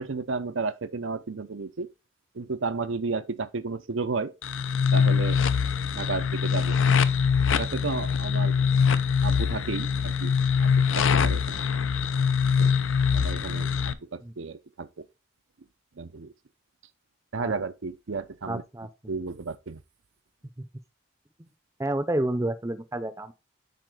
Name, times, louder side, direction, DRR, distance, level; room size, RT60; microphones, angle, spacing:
voice 1, 0.0-1.9 2.3-4.3 4.9-5.4 5.9-6.8 7.5-8.6 9.2-10.3 10.6-11.6 12.6-12.8 13.1-15.1 16.0-16.3 17.3-18.6 19.1-19.8, right 4 dB, 75° right, 0.6 m, -32 dB
sound 1, 4.4-13.9, left 6 dB, 80° left, 0.6 m, -23 dB
voice 2, 18.5-18.9 20.6-20.7 21.4-21.5 21.8-23.3, right 1 dB, 15° right, 0.6 m, -29 dB
9.3 x 4.3 x 3.8 m
head